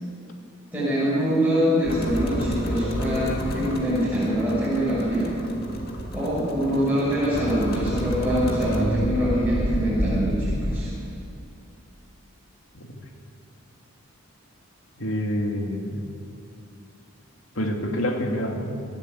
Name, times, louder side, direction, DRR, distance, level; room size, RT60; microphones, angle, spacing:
voice 1, 0.7-5.3 6.1-10.9, equal, 10° right, -10 dB, 6.3 m, -24 dB
sound 1, 1.8-10.7, equal, 45° left, 2.5 m, -29 dB
voice 2, 15.0-16.0 17.6-18.9, equal, 70° left, 2 dB, 2.7 m, -27 dB
27.0 x 13.5 x 8.2 m, 2.6 s
head